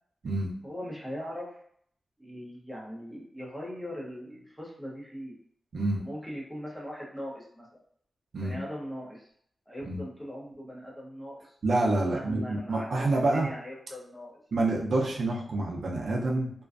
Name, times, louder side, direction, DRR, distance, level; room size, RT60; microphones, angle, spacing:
voice 1, 0.6-1.6 2.2-5.4 6.0-7.8 8.4-9.3 9.7-11.6 12.0-14.4, equal, 5° left, -4 dB, 0.6 m, -40 dB
voice 2, 11.6-13.5 14.5-16.5, right 2 dB, 60° right, -1 dB, 0.4 m, -27 dB
2.4 x 2.2 x 2.3 m, 0.65 s
wide cardioid pair, 170°, 0 cm